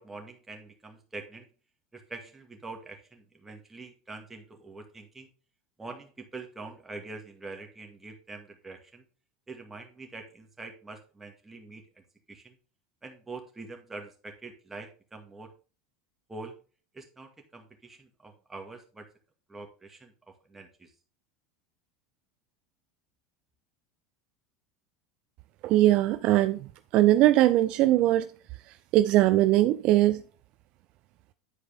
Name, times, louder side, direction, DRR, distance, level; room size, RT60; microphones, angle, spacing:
voice 1, 0.0-1.5 1.9-5.3 5.8-9.0 9.5-12.0 12.3-12.6 13.0-15.5 16.3-16.6 16.9-19.1 19.5-20.9, right 3 dB, 10° right, 2.0 m, -44 dB
voice 2, 25.6-26.6 26.9-28.3 28.9-30.2, right 15 dB, 50° right, 0.5 m, -21 dB
10.0 x 4.6 x 3.6 m
supercardioid pair, 120°, 2 cm